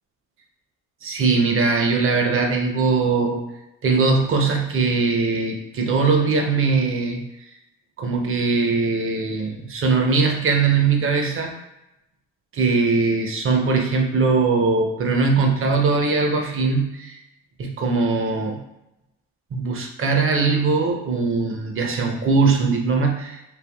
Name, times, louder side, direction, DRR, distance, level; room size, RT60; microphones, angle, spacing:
voice 1, 1.0-3.4 3.8-7.2 8.0-11.5 12.5-17.2 17.6-18.6 19.5-23.4, right 4 dB, 45° right, 2 dB, 0.6 m, -20 dB
3.3 x 2.4 x 2.3 m, 0.90 s
cardioid pair, 90°, 30 cm